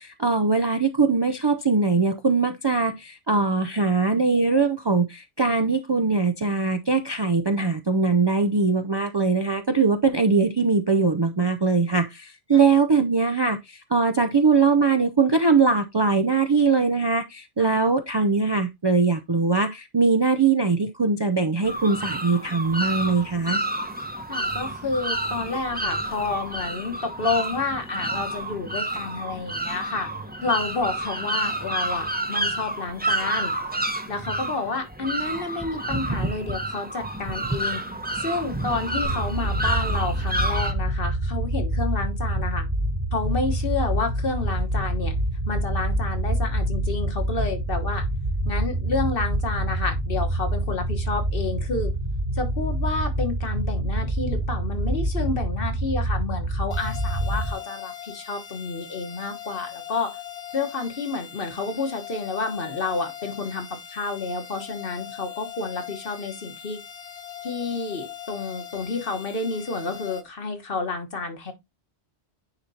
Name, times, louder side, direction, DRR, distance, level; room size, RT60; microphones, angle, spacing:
voice 1, 0.0-23.6, right 4 dB, 35° right, 0.4 m, -21 dB
sound 1, 21.6-40.7, right 1 dB, 10° right, 0.7 m, -29 dB
voice 2, 24.3-30.1 30.4-33.5 34.1-37.8 38.1-42.7 43.1-45.1 45.5-48.0 48.4-51.9 52.3-60.2 60.5-66.8 67.4-71.5, left 3 dB, 60° left, 1.5 m, -30 dB
sound 2, 39.0-57.5, right 1 dB, 60° right, 2.6 m, -26 dB
sound 3, 56.7-70.2, left 10 dB, 35° left, 1.2 m, -40 dB
9.7 x 4.3 x 2.7 m
omnidirectional pair, 1.1 m